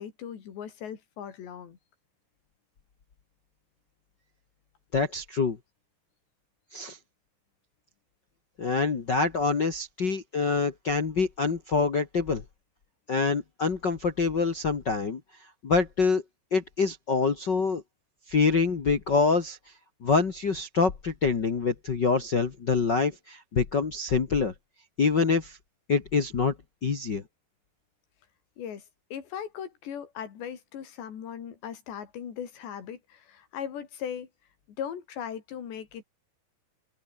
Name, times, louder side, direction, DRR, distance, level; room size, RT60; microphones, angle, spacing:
voice 1, 0.0-1.8 28.6-28.8 29.1-34.3 34.8-36.0, left 8 dB, 80° left, 5.4 m, -38 dB
voice 2, 4.9-5.6 6.7-7.0 8.6-12.4 13.1-15.2 15.6-16.2 16.5-17.8 18.3-19.6 20.0-24.5 25.0-25.6 25.9-26.5 26.8-27.2, left 4 dB, 55° left, 1.2 m, -25 dB
open air
omnidirectional pair, 4.9 m